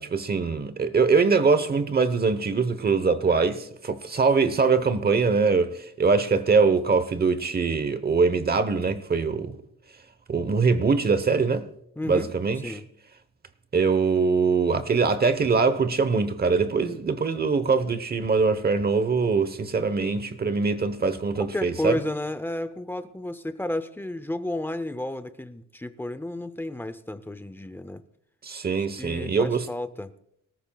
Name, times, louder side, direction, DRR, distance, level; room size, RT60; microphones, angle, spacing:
voice 1, 0.0-9.6 10.3-11.7 12.1-12.8 13.7-22.0 28.4-29.7, right 4 dB, 30° right, 1.0 m, -23 dB
voice 2, 12.0-12.3 12.6-12.9 21.0-21.1 21.4-28.0 28.8-30.1, left 1 dB, 5° left, 0.5 m, -32 dB
26.0 x 13.5 x 2.3 m
wide cardioid pair, 165°, 32 cm